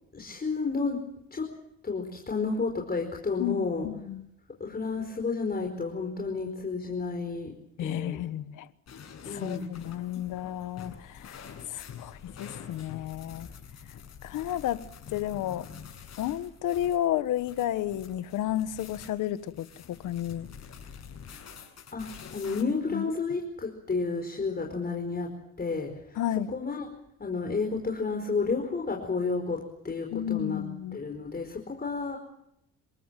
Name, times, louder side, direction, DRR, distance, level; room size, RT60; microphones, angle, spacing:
voice 1, 0.1-1.0 1.3-1.5 1.8-3.9 4.6-8.2 9.2-9.7 21.9-22.1 22.3-25.3 25.6-26.2 26.5-26.9 27.2-30.6 30.9-32.2, left 4 dB, 30° left, 2 dB, 4.8 m, -31 dB
voice 2, 3.4-4.3 7.8-8.7 9.2-11.4 11.7-13.5 14.2-14.8 15.1-15.7 16.2-20.5 22.9-23.1 26.2-26.5 30.1-31.0, left 12 dB, 85° left, 13 dB, 1.4 m, -32 dB
sound 1, 8.9-22.6, left 7 dB, 60° left, 7.9 m, -47 dB
28.0 x 18.0 x 7.6 m, 0.77 s
cardioid pair, 90°, 30 cm